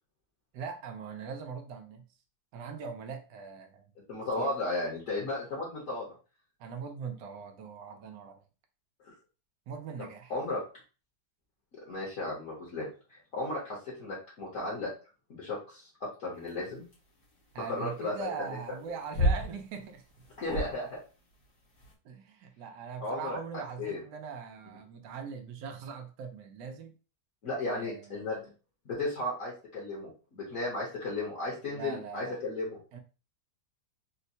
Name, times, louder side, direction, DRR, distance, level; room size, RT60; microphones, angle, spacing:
voice 1, 0.5-2.1 2.5-3.9 4.4-4.5 6.6-8.4 9.7-10.3 17.5-20.0 22.0-26.9 27.6-28.3 31.6-32.4 32.9-33.0, right 6 dB, 85° right, 1.2 m, -41 dB
voice 2, 4.1-6.1 9.0-9.1 10.0-10.6 11.7-12.9 13.3-14.9 15.3-16.8 17.6-18.3 20.4-21.0 23.0-23.4 23.8-24.0 27.4-28.5 28.8-32.8, left 2 dB, 55° left, 1.4 m, -35 dB
sound 1, 16.4-21.9, equal, 70° left, 2.1 m, -33 dB
4.4 x 2.1 x 2.6 m
omnidirectional pair, 1.8 m